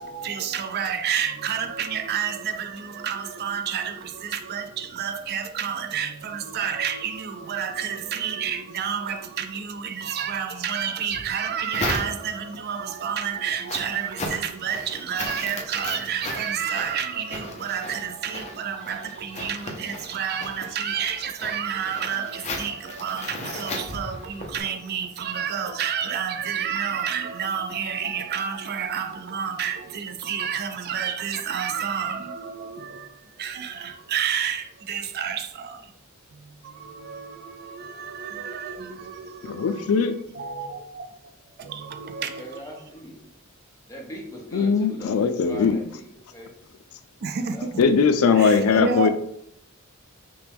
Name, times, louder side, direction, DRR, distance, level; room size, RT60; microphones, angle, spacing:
voice 1, 0.0-35.9 36.3-40.0 40.3-41.1 41.6-42.6 47.2-47.8 48.4-49.1, right 7 dB, 50° right, 0.4 m, -30 dB
sound 1, 11.1-12.6 13.0-24.6, left 2 dB, 35° left, 0.6 m, -36 dB
voice 2, 39.4-40.2 44.5-45.8 47.8-49.1, left 5 dB, 85° left, 0.4 m, -20 dB
voice 3, 42.2-43.2 43.9-46.5 47.5-47.9 48.7-49.1, equal, 15° left, 1.0 m, -40 dB
5.9 x 2.2 x 3.4 m
head